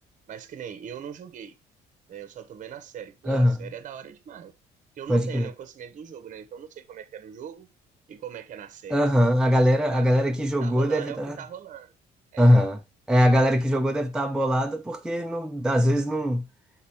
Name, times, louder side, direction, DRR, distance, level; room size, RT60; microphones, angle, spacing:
voice 1, 0.3-1.5 2.1-4.5 5.0-7.7 8.1-9.0 9.9-11.9 12.3-12.6, right 9 dB, 50° right, 0.9 m, -40 dB
voice 2, 3.3-3.6 5.1-5.5 8.9-11.4 12.4-12.8 13.1-16.4, equal, 5° right, 0.6 m, -22 dB
6.0 x 4.2 x 4.3 m
cardioid pair, 110°, 17 cm